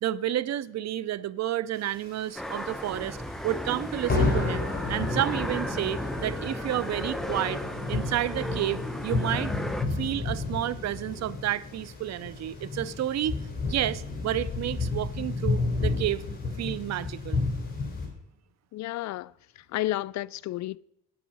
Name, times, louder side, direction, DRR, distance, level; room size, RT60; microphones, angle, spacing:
voice 1, 0.0-3.2 3.4-7.6 7.9-9.5 9.9-16.2 16.6-17.4, right 12 dB, 60° right, 0.6 m, -30 dB
sound 1, 1.9-2.9 3.2-3.4 3.7-3.8 4.1-18.1, left 3 dB, 30° left, 3.7 m, -31 dB
sound 2, 2.4-9.9, equal, ahead, 0.8 m, -35 dB
voice 2, 18.7-19.3 19.7-20.8, left 15 dB, 65° left, 0.4 m, -31 dB
8.9 x 8.8 x 5.4 m
cardioid pair, 90°, 30 cm